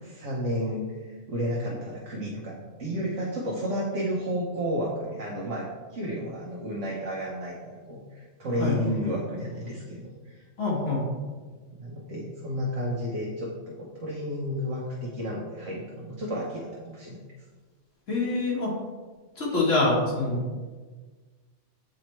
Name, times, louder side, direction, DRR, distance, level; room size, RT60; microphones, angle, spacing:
voice 1, 0.0-10.5 11.7-17.2, equal, 75° right, -3 dB, 1.3 m, -32 dB
voice 2, 10.6-11.0 18.1-18.7 19.4-20.5, left 3 dB, 75° left, -4 dB, 2.0 m, -25 dB
7.6 x 4.6 x 3.1 m, 1.4 s
omnidirectional pair, 1.3 m